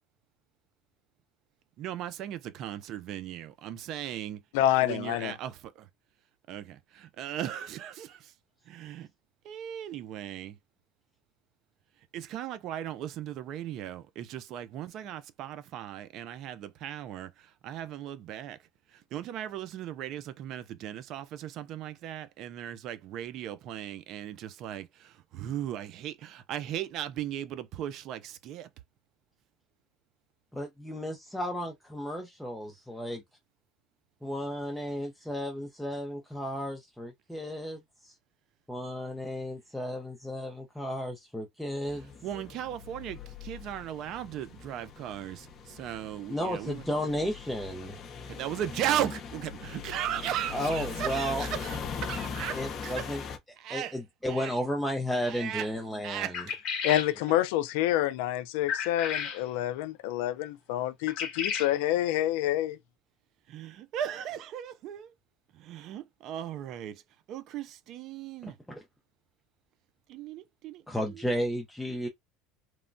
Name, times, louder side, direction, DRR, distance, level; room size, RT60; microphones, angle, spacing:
voice 1, 1.8-4.4 4.8-5.9 6.5-8.3 8.7-9.1 9.4-10.6 12.1-18.6 18.9-28.7 42.2-46.8 48.3-53.1 53.6-54.0 54.3-54.5 55.2-55.7 56.0-56.6 63.5-65.1 65.5-67.0 67.3-68.6 70.1-71.3, right 11 dB, 55° right, 0.4 m, -37 dB
voice 2, 4.5-5.3 56.8-62.8, left 13 dB, 85° left, 0.4 m, -27 dB
voice 3, 30.5-33.2 34.2-38.1 38.7-42.1 46.3-48.0 50.5-51.5 52.5-53.2 53.7-56.4 68.4-68.8 70.9-72.1, equal, 5° left, 0.6 m, -33 dB
sound 1, 41.8-53.4, left 6 dB, 40° left, 0.6 m, -40 dB
sound 2, 56.3-57.1 58.7-59.4 61.1-61.7, left 7 dB, 60° left, 1.0 m, -32 dB
3.0 x 2.2 x 2.5 m
supercardioid pair, 125°, 0 cm